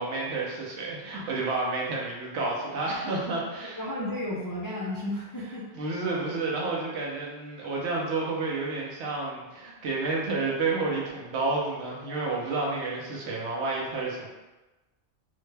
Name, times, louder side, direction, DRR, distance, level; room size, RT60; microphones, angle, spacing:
voice 1, 0.0-3.8 5.7-14.3, right 3 dB, 75° right, -4 dB, 1.1 m, -30 dB
voice 2, 3.6-5.7, left 1 dB, 35° left, -6 dB, 0.3 m, -33 dB
3.8 x 2.1 x 3.2 m, 1.1 s
omnidirectional pair, 1.2 m